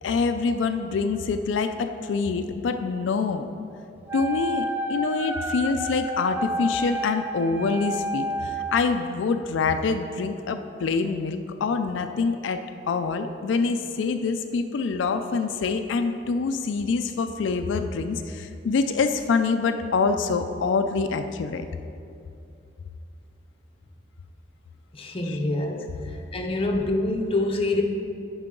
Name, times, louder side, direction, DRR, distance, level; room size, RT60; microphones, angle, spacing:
voice 1, 0.0-3.5 4.1-21.7 25.2-25.4, left 4 dB, 85° left, 7 dB, 0.4 m, -26 dB
Wind instrument woodwind instrument, 4.1-8.9, equal, 10° right, 0.5 m, -30 dB
voice 2, 24.9-26.0 26.3-27.8, left 2 dB, 30° left, 2 dB, 0.6 m, -26 dB
9.5 x 5.6 x 3.7 m, 2.6 s
head